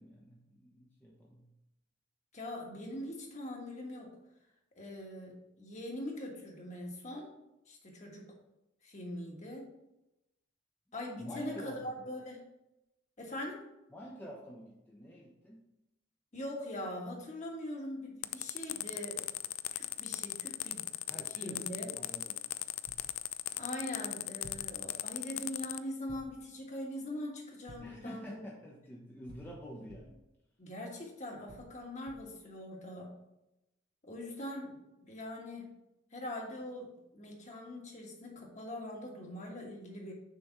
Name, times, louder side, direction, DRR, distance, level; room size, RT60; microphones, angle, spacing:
voice 1, 0.0-1.5 11.2-12.1 13.9-15.6 21.1-22.4 27.8-30.2, equal, 10° left, -3 dB, 0.7 m, -48 dB
voice 2, 2.3-4.1 4.8-7.3 7.7-8.3 8.8-9.7 10.9-12.4 13.2-13.6 16.3-19.2 19.7-21.9 23.5-28.3 30.6-33.1 34.0-35.6 36.1-40.1, left 1 dB, 40° left, -1 dB, 1.5 m, -42 dB
sound 1, 18.2-25.8, left 16 dB, 85° left, 0.3 m, -37 dB
sound 2, 22.9-23.2 24.4-24.8 26.1-26.4 27.7-28.0 29.3-30.2 31.5-32.4, equal, 55° right, 0.9 m, -53 dB
6.4 x 3.4 x 5.9 m, 0.91 s
head